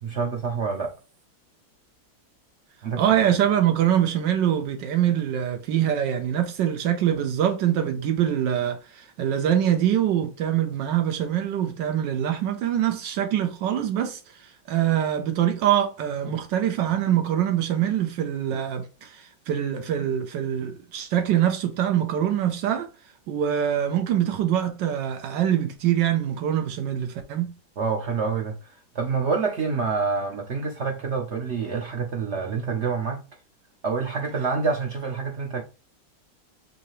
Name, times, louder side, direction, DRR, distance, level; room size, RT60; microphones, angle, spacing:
voice 1, 0.0-0.9 2.8-3.0 27.8-33.2 33.8-35.6, right 5 dB, 55° right, 0.8 m, -27 dB
voice 2, 3.0-22.9 23.3-27.5, right 10 dB, 85° right, 1.4 m, -24 dB
5.6 x 2.8 x 3.0 m
omnidirectional pair, 1.9 m